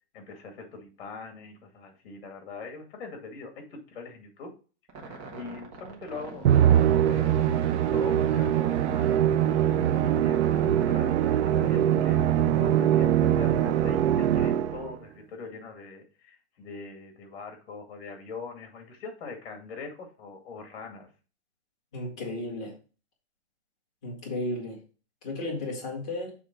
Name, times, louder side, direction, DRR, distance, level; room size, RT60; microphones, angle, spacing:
voice 1, 0.1-4.5 5.1-6.5 7.0-7.4 7.9-9.2 9.7-12.2 12.5-21.1, left 4 dB, 55° left, 2.4 m, -42 dB
sound 1, 4.9-11.6, right 4 dB, 15° right, 0.8 m, -41 dB
Musical instrument, 6.4-14.9, right 10 dB, 75° right, 0.5 m, -23 dB
voice 2, 21.9-22.7 24.0-24.8 25.2-26.3, left 1 dB, 5° left, 0.3 m, -34 dB
7.1 x 3.6 x 4.5 m
supercardioid pair, 175°, 35 cm